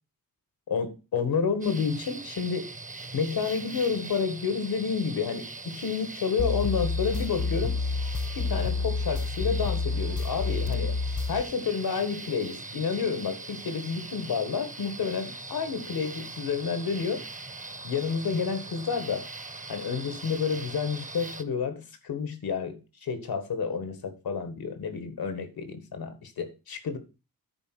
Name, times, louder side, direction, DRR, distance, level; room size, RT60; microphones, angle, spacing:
voice 1, 0.7-2.7 3.1-7.8 8.4-11.0 11.3-17.2 17.8-19.3 19.7-27.0, left 5 dB, 85° left, 1.7 m, -30 dB
sound 1, 1.6-21.4, right 3 dB, 20° right, 0.9 m, -41 dB
sound 2, 6.4-11.4, left 4 dB, 60° left, 1.1 m, -29 dB
10.0 x 4.1 x 6.3 m
cardioid pair, 80°, 36 cm